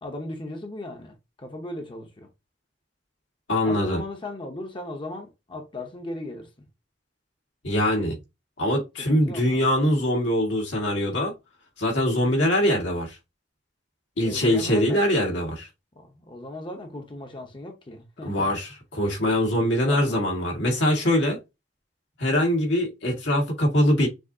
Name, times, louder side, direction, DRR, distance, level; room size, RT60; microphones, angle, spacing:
voice 1, 0.0-2.3 3.6-6.5 9.1-9.7 14.2-15.0 16.0-18.6 19.8-20.2, left 1 dB, 25° left, 0.8 m, -37 dB
voice 2, 3.5-4.0 7.6-8.2 8.6-11.3 11.8-13.2 14.2-15.7 18.2-21.4 22.2-24.1, left 1 dB, 80° left, 1.9 m, -23 dB
6.2 x 2.8 x 2.7 m
head